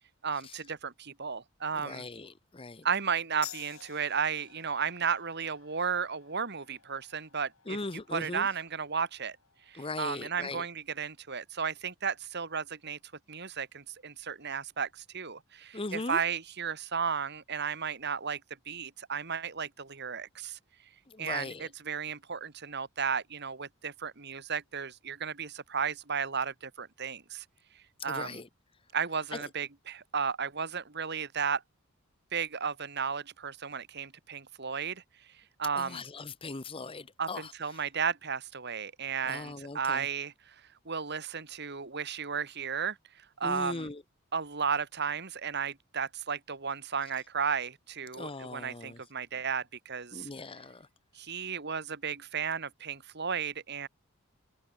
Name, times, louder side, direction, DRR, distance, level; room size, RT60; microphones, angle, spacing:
voice 1, 0.2-2.1 2.8-7.8 8.1-9.4 9.7-13.0 13.3-18.4 18.7-20.6 21.2-27.4 28.0-28.4 28.9-31.6 32.3-35.0 35.6-36.0 37.2-40.3 40.9-43.0 43.4-43.9 44.3-50.3 51.2-53.9, right 6 dB, 50° right, 2.0 m, -34 dB
voice 2, 1.7-2.9 7.7-8.5 9.7-10.6 15.7-16.2 21.1-21.7 28.1-28.5 29.3-29.4 35.7-37.5 39.2-40.1 43.4-44.0 48.1-49.0 50.1-50.9, left 3 dB, 25° left, 1.0 m, -39 dB
sound 1, 3.4-10.5, left 12 dB, 85° left, 4.0 m, -52 dB
head